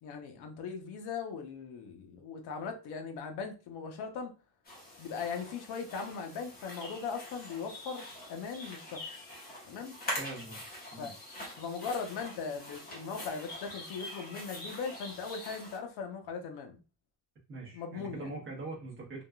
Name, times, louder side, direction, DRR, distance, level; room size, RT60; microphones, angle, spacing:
voice 1, 0.0-4.3 5.0-9.0 9.7-9.9 11.0-11.1 11.6-16.8 17.7-18.3, left 5 dB, 70° left, 0.8 m, -39 dB
sound 1, 4.6-15.8, left 1 dB, 20° left, 1.0 m, -44 dB
voice 2, 10.2-10.6 10.9-11.1 17.5-19.2, right 2 dB, 30° right, 1.0 m, -42 dB
3.5 x 2.3 x 2.2 m
cardioid pair, 165°, 41 cm